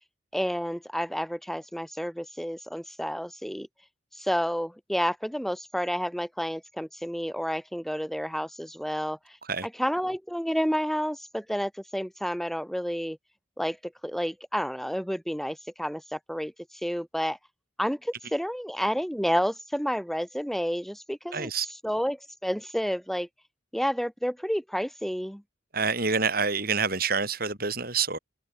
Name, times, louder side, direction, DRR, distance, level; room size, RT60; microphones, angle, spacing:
voice 1, 0.3-3.7 4.1-9.4 9.6-13.2 13.6-16.5 16.8-17.4 17.8-23.3 23.7-25.4, equal, ahead, 7.5 m, -30 dB
voice 2, 21.3-21.7 25.7-28.2, right 5 dB, 50° right, 7.9 m, -27 dB
open air
head